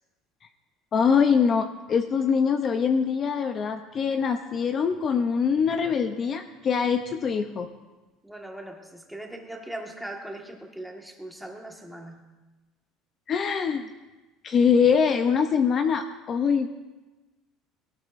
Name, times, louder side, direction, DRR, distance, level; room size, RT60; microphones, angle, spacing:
voice 1, 0.9-7.7 13.3-13.8 14.4-16.7, left 6 dB, 35° left, 7 dB, 0.6 m, -23 dB
voice 2, 8.2-12.2, right 1 dB, ahead, 1 dB, 1.6 m, -40 dB
20.0 x 17.5 x 2.6 m, 1.1 s
cardioid pair, 145°, 0 cm